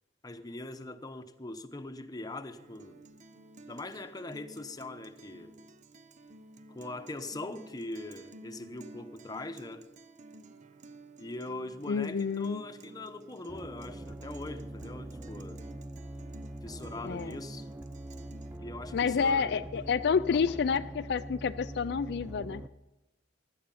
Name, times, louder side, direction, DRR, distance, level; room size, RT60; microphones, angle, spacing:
voice 1, 0.2-3.0 3.7-5.6 6.7-9.9 11.2-15.6 16.6-17.7 18.6-19.6 20.3-20.6, left 2 dB, 20° left, 0.9 m, -42 dB
Guitar, 2.6-18.6, right 2 dB, 45° right, 0.7 m, -52 dB
voice 2, 11.9-12.6 17.1-17.4 18.9-22.6, left 6 dB, 65° left, 0.4 m, -29 dB
sound 1, 13.5-22.7, right 1 dB, 10° right, 0.4 m, -43 dB
16.5 x 11.5 x 5.6 m
head